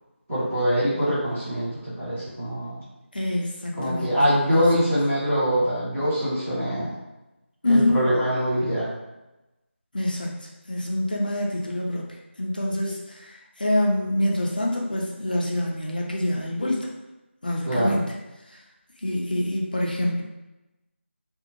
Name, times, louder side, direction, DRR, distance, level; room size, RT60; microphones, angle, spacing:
voice 1, 0.3-2.8 3.7-6.9 7.6-8.9 17.6-18.0, equal, 10° right, -17 dB, 0.7 m, -24 dB
voice 2, 3.1-4.2 4.5-4.7 7.6-8.1 9.9-16.9 17.4-18.0 18.5-18.6 19.0-20.2, left 1 dB, 45° left, -2 dB, 0.5 m, -26 dB
2.6 x 2.0 x 2.9 m, 0.99 s
figure-of-eight pair, 180°, 7 cm